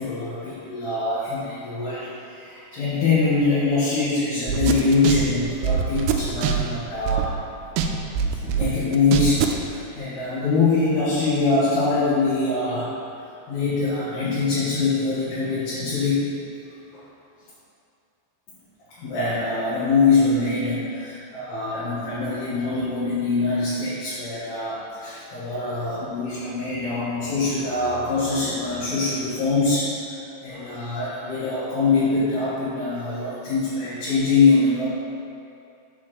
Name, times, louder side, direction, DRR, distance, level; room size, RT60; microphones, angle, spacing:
voice 1, 0.0-2.1 2.4-7.3 8.4-12.9 13.5-16.2 19.0-29.9 30.4-34.9, left 3 dB, 70° left, -13 dB, 3.8 m, -23 dB
sound 1, 4.5-7.4 7.8-9.6, right 7 dB, 85° right, 2.4 m, -23 dB
8.3 x 7.2 x 3.4 m, 2.6 s
omnidirectional pair, 5.1 m